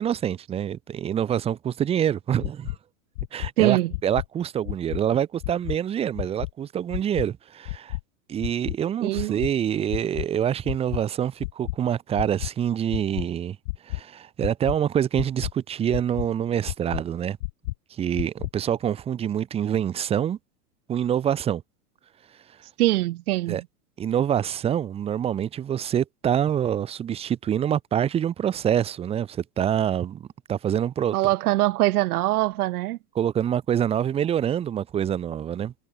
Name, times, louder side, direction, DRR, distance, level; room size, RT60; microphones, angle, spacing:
voice 1, 0.0-2.8 3.3-8.0 8.3-13.6 13.8-17.4 17.9-20.4 20.9-21.6 23.5-23.6 24.0-31.3 33.1-35.7, right 9 dB, 15° right, 0.5 m, -26 dB
sound 1, 2.4-2.7 3.1-3.5 3.9-4.2 4.6-5.0 5.4-5.7 6.1-6.5 6.9-7.2 7.6-8.0 8.4-8.7 9.1-9.5 9.9-10.2 10.6-11.0 11.4-11.7 12.1-12.5 12.9-13.2 13.6-14.0 14.4-14.8 15.1-15.5 15.9-16.3 16.6-17.0 17.4-17.7 18.1-18.5, left 21 dB, 60° left, 1.0 m, -30 dB
voice 2, 3.6-3.9 9.0-9.3 22.8-23.6 31.1-33.0, right 17 dB, 80° right, 0.9 m, -22 dB
supercardioid pair, 135°, 44 cm